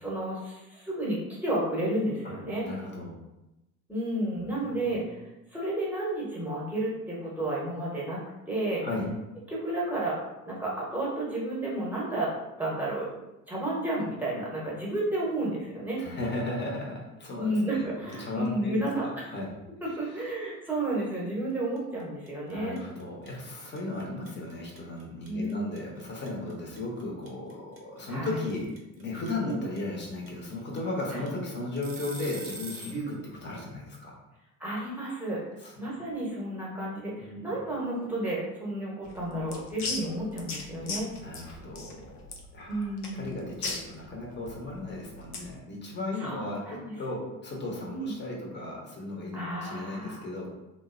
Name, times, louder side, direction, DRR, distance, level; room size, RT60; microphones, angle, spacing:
voice 1, 0.0-2.7 3.9-5.2 5.5-8.2 8.5-8.8 9.5-10.2 10.4-12.3 12.6-13.1 13.5-16.0 17.3-19.3 19.8-22.8 25.3-25.7 28.1-28.4 29.4-29.6 31.1-31.3 32.9-33.1 34.6-35.4 35.8-41.1 42.7-43.3 46.2-46.9 47.9-48.1 49.3-50.2, right 1 dB, 5° right, -6 dB, 0.9 m, -31 dB
voice 2, 2.7-3.2 4.4-5.1 8.8-9.1 16.0-17.9 18.2-19.6 19.9-20.0 22.5-34.2 35.6-35.7 37.2-37.6 41.2-42.2 42.5-50.5, left 2 dB, 25° left, -2 dB, 0.8 m, -36 dB
sound 1, 21.8-22.0 22.3-33.0, right 2 dB, 30° right, 0.7 m, -43 dB
sound 2, 39.0-45.6, left 3 dB, 90° left, 0.5 m, -38 dB
2.5 x 2.1 x 2.5 m, 0.96 s
hypercardioid pair, 70°, 44 cm